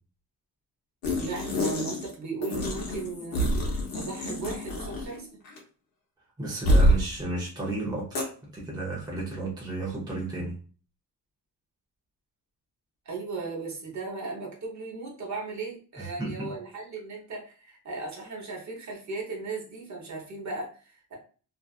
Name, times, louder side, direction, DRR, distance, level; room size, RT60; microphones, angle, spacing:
sound 1, 1.0-2.1 2.4-5.2 5.5-5.6 6.7-7.0 8.2-8.3, equal, 60° left, 0.8 m, -26 dB
voice 1, 1.2-3.4 3.9-5.3 13.1-21.2, right 3 dB, 45° right, 0.9 m, -36 dB
voice 2, 6.4-10.5 16.0-16.5, right 2 dB, 10° right, 0.7 m, -33 dB
2.6 x 2.4 x 2.3 m
cardioid pair, 145°, 40 cm